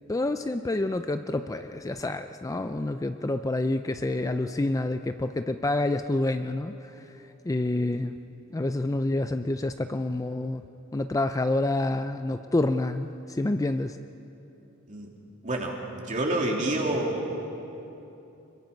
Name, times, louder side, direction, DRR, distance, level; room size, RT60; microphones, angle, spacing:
voice 1, 0.1-6.7 7.4-8.1 8.5-10.6 10.9-14.0, left 2 dB, 15° left, 8 dB, 0.4 m, -28 dB
voice 2, 15.4-17.4, right 1 dB, 35° right, 0 dB, 2.9 m, -28 dB
25.0 x 22.0 x 5.3 m, 2.9 s
head